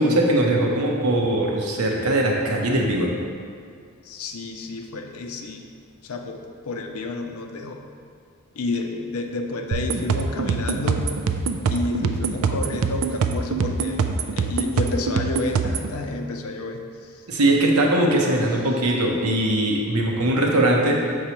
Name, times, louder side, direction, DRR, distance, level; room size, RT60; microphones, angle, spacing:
voice 1, 0.0-3.1 17.3-21.0, right 1 dB, 85° right, 0 dB, 0.8 m, -20 dB
voice 2, 4.0-5.7 6.0-7.8 8.6-11.1 11.7-17.2, left 2 dB, 75° left, 4 dB, 0.5 m, -30 dB
sound 1, 9.7-15.9, right 5 dB, 70° right, 0.3 m, -24 dB
6.7 x 4.7 x 2.9 m, 2.2 s
head